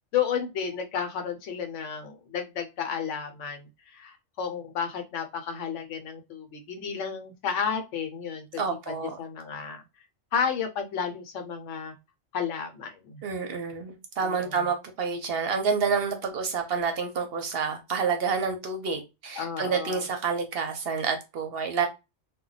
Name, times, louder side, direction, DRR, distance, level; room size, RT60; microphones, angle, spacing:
voice 1, 0.1-8.5 9.2-9.8 10.3-11.9 12.3-13.2 14.2-14.7 19.4-20.0, left 7 dB, 75° left, 1.0 m, -32 dB
voice 2, 8.6-9.1 13.2-21.9, right 5 dB, 60° right, 0.7 m, -28 dB
2.2 x 2.1 x 3.8 m
omnidirectional pair, 1.3 m